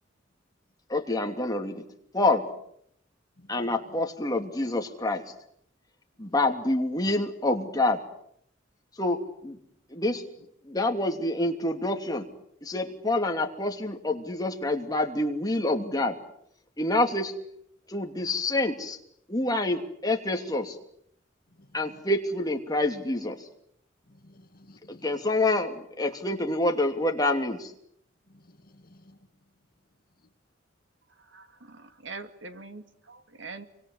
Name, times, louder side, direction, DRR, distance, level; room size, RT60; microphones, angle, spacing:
voice 1, 0.9-1.8 2.1-2.5 3.5-5.3 6.2-8.0 9.0-9.6 9.9-10.2 10.6-12.2 12.6-16.2 16.8-17.3 17.9-19.0 19.3-20.8 21.7-23.4 24.9-27.7, left 2 dB, 20° left, 2.9 m, -27 dB
voice 2, 3.4-3.9 6.2-6.4 21.5-22.0 24.1-25.2 28.3-29.2, left 1 dB, 50° left, 2.3 m, -56 dB
voice 3, 31.3-33.7, right 3 dB, 75° right, 2.5 m, -43 dB
28.0 x 24.5 x 8.2 m
head